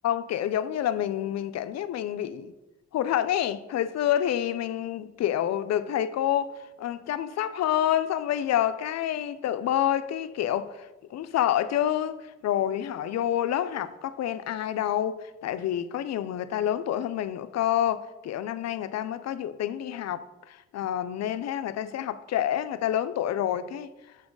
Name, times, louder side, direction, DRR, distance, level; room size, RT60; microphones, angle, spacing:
voice 1, 0.0-2.5 2.9-10.9 11.1-23.9, left 11 dB, 60° left, 0.5 m, -28 dB
7.0 x 4.2 x 4.7 m
cardioid pair, 90°, 30 cm